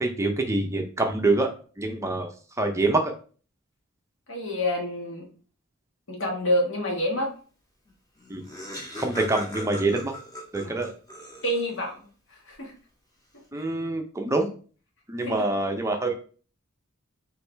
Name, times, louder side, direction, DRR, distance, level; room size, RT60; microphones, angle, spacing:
voice 1, 0.0-1.5 1.8-2.3 2.6-3.1 8.3-8.4 9.0-10.1 10.5-10.9 13.5-14.5 15.1-16.1, right 2 dB, 15° right, 3 dB, 0.5 m, -25 dB
voice 2, 4.3-5.3 6.1-7.3 10.6-10.8 11.4-12.0 12.3-12.7 13.5-13.6 15.2-15.5, left 1 dB, 65° left, 0 dB, 1.4 m, -28 dB
Laughter, 7.9-8.0 8.2-11.8, equal, 15° left, 1.3 m, -38 dB
4.6 x 3.1 x 3.3 m, 0.40 s
head